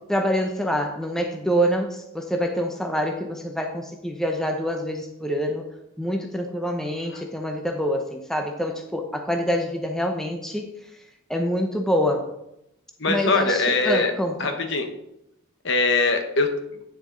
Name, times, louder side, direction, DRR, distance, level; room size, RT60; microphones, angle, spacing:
voice 1, 0.1-5.7 6.0-10.7 11.3-12.3 13.1-14.6, equal, ahead, 2 dB, 0.7 m, -26 dB
voice 2, 13.0-14.1 14.4-14.9 15.6-16.5, left 3 dB, 55° left, 6 dB, 1.0 m, -22 dB
9.3 x 6.6 x 3.8 m, 0.84 s
head